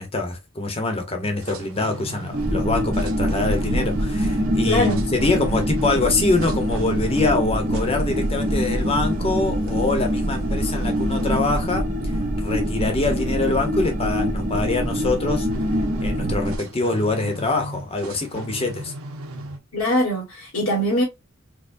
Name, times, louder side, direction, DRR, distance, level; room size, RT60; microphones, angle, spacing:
voice 1, 0.0-12.1 12.4-15.5 16.0-18.9, left 3 dB, 30° left, 0.9 m, -24 dB
sound 1, 1.2-19.6, right 2 dB, 90° right, 0.8 m, -39 dB
sound 2, 2.3-16.6, equal, 40° right, 0.7 m, -24 dB
voice 2, 4.6-5.0 19.7-21.0, equal, 80° left, 1.5 m, -22 dB
4.5 x 2.2 x 2.6 m
head